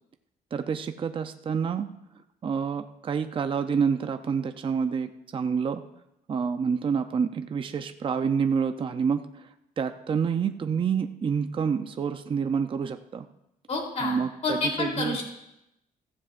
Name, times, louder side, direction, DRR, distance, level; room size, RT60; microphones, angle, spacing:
voice 1, 0.5-1.9 2.4-5.8 6.3-9.2 9.8-13.2 14.0-15.2, right 6 dB, 35° right, 8 dB, 0.6 m, -28 dB
voice 2, 13.7-15.2, left 3 dB, 45° left, 0 dB, 3.4 m, -29 dB
15.0 x 14.5 x 2.5 m, 0.85 s
cardioid pair, 140°, 15 cm